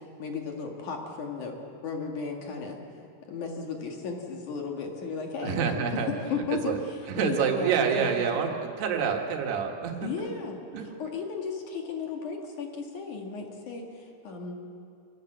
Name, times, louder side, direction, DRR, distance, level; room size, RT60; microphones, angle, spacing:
voice 1, 0.2-1.6 1.8-2.8 3.2-6.7 7.2-8.5 10.0-10.6 10.8-14.5, left 5 dB, 55° left, 1 dB, 3.1 m, -35 dB
voice 2, 5.4-6.1 6.6-6.8 7.1-10.3 10.7-10.9, right 6 dB, 85° right, 2 dB, 3.8 m, -27 dB
25.5 x 18.0 x 7.9 m, 2.5 s
omnidirectional pair, 4.6 m